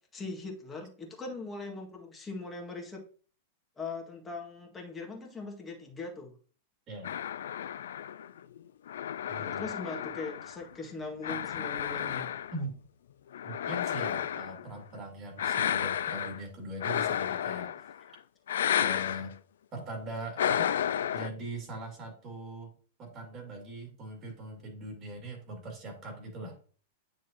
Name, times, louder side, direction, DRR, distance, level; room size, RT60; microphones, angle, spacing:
voice 1, 0.1-3.0 3.8-6.3 9.3-12.3, left 3 dB, 15° left, 0 dB, 1.8 m, -40 dB
sound 1, 7.0-10.7 11.2-12.7 13.3-14.7 15.4-16.4 16.8-18.0 18.5-19.3 20.4-21.3, left 9 dB, 65° left, 0.3 m, -32 dB
voice 2, 9.3-9.7 12.5-12.7 13.4-17.7 18.7-19.3 19.7-20.7 21.1-22.7 23.0-26.6, right 1 dB, 35° right, 2 dB, 2.3 m, -41 dB
9.4 x 3.9 x 2.9 m, 0.42 s
figure-of-eight pair, 100°, 0 cm